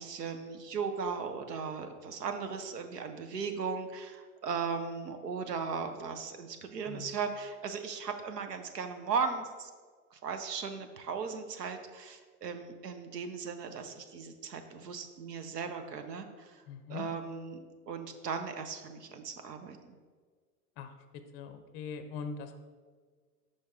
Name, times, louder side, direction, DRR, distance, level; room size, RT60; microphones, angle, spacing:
voice 1, 0.0-9.7 10.1-16.6 16.9-20.0, right 5 dB, 80° right, 7 dB, 0.8 m, -37 dB
voice 2, 16.7-17.0 20.8-20.9 21.3-22.5, left 6 dB, 35° left, 9 dB, 0.5 m, -41 dB
5.3 x 5.2 x 3.5 m, 1.6 s
hypercardioid pair, 95°, 48 cm